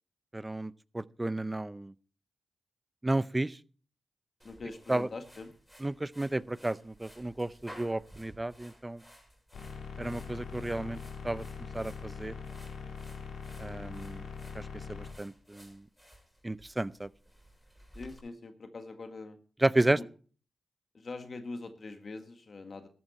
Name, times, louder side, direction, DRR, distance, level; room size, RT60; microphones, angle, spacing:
voice 1, 0.3-1.9 3.0-3.6 4.9-5.1 5.8-9.0 10.0-11.0 11.2-11.4 11.7-12.3 13.6-14.2 14.5-15.8 16.4-17.1 19.6-20.0, right 1 dB, 20° right, 0.6 m, -32 dB
voice 2, 4.4-5.6 17.9-19.4 19.9-20.1 20.9-22.9, left 3 dB, 55° left, 1.8 m, -43 dB
sound 1, 4.4-18.2, equal, ahead, 6.7 m, -56 dB
sound 2, 9.5-15.1, left 5 dB, 80° left, 3.5 m, -42 dB
13.5 x 12.5 x 4.2 m
supercardioid pair, 45°, 0 cm